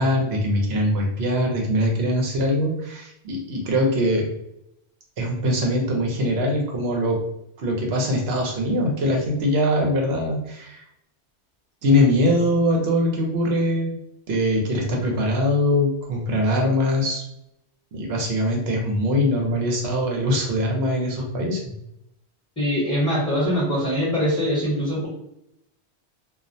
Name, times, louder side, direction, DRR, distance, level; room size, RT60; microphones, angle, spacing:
voice 1, 0.0-4.2 5.2-7.2 7.6-10.8 11.8-13.9 14.3-17.2 17.9-21.6, left 1 dB, 70° right, 0 dB, 0.9 m, -22 dB
voice 2, 22.6-25.1, equal, 15° left, -9 dB, 0.9 m, -23 dB
2.4 x 2.1 x 2.5 m, 0.80 s
omnidirectional pair, 1.1 m